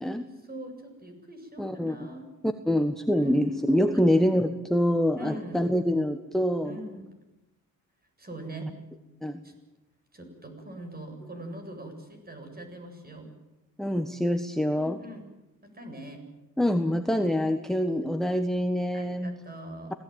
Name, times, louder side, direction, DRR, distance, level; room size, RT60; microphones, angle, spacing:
voice 1, 0.4-2.3 3.1-4.1 5.1-5.6 6.6-7.1 8.2-8.7 9.4-9.5 10.1-13.3 14.7-15.3 15.6-16.2 18.9-19.9, right 1 dB, 25° right, 5 dB, 7.9 m, -42 dB
voice 2, 1.6-1.9 2.4-6.8 9.2-9.4 13.8-15.0 16.6-19.3, equal, ahead, 7 dB, 1.5 m, -25 dB
26.5 x 18.5 x 9.4 m, 1.0 s
cardioid pair, 95°, 34 cm